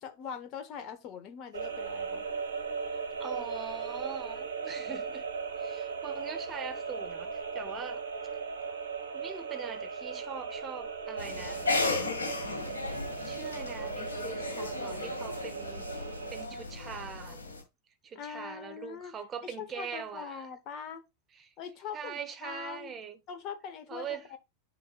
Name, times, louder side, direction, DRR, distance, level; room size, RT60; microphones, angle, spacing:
voice 1, 0.0-2.2 18.1-19.1 19.4-21.0 21.6-23.0 23.3-24.4, left 7 dB, 40° left, 1.1 m, -42 dB
sound 1, 1.5-16.5, right 5 dB, 70° right, 1.0 m, -38 dB
voice 2, 2.9-5.3 5.6-8.0 9.1-11.7 13.2-17.4 18.0-20.5 21.3-21.5 21.9-23.2 23.9-24.3, right 7 dB, 25° right, 1.2 m, -42 dB
sound 2, 11.2-17.6, left 3 dB, 70° left, 1.9 m, -35 dB
9.4 x 4.6 x 2.3 m
figure-of-eight pair, 90°, 0 cm